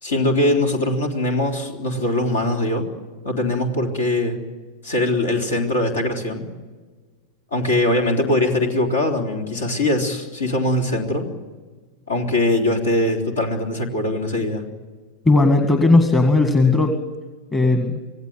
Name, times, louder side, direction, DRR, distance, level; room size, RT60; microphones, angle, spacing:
voice 1, 0.0-2.9 3.2-4.4 4.8-6.5 7.5-11.3 12.1-14.6, left 1 dB, 65° left, 3 dB, 3.6 m, -21 dB
voice 2, 15.3-17.0 17.5-18.0, left 2 dB, 20° left, 5 dB, 1.9 m, -16 dB
26.0 x 17.0 x 9.4 m, 1.4 s
figure-of-eight pair, 90°, 0 cm